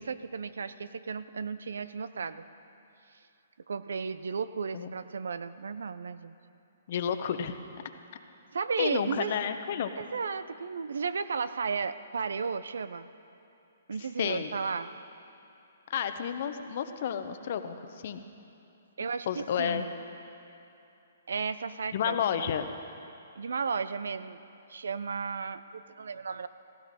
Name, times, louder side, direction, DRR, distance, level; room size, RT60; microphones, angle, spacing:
voice 1, 0.0-2.5 3.7-6.3 8.5-9.3 10.0-13.1 13.9-14.9 19.0-19.9 21.3-22.5 23.4-24.4 24.7-26.5, right 5 dB, 80° right, 13 dB, 0.6 m, -34 dB
voice 2, 6.9-7.5 8.8-9.9 14.2-14.5 15.9-18.2 19.3-19.9 21.9-22.7, left 8 dB, 55° left, 9 dB, 0.9 m, -31 dB
16.0 x 16.0 x 4.2 m, 2.8 s
hypercardioid pair, 140°, 0 cm